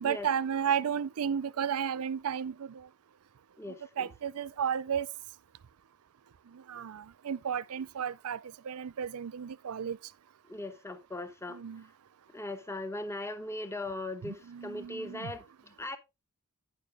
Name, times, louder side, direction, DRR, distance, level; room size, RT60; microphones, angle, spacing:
voice 1, 0.0-2.9 4.0-5.1 6.7-8.4 8.6-10.0 11.5-11.8 14.2-15.3, right 8 dB, 80° right, 0.4 m, -33 dB
voice 2, 3.6-4.1 10.5-11.6 12.3-16.0, left 2 dB, 10° left, 1.0 m, -39 dB
9.9 x 6.6 x 3.5 m
head